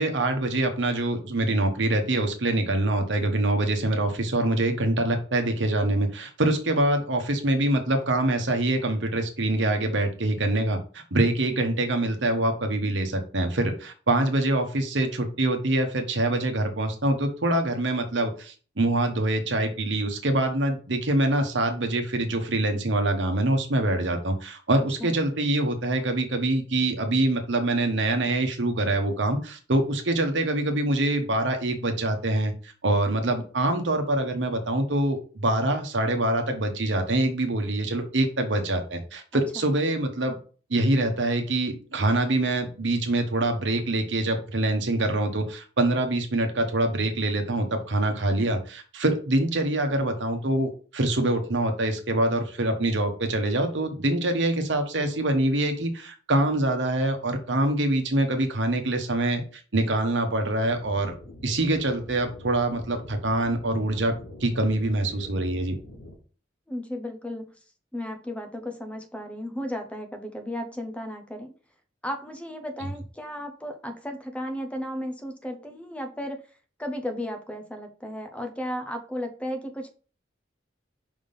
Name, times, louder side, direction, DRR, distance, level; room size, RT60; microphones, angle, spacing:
voice 1, 0.0-32.5 32.8-40.4 40.7-61.1 61.4-64.1 64.4-65.7, right 1 dB, 70° right, 5 dB, 1.2 m, -25 dB
voice 2, 39.3-39.6 66.7-67.6 67.9-71.5 72.0-76.4 76.8-79.9, equal, 5° left, 6 dB, 0.9 m, -34 dB
sound 1, 60.6-66.2, left 1 dB, 80° left, 1.8 m, -44 dB
5.3 x 3.6 x 5.4 m, 0.39 s
head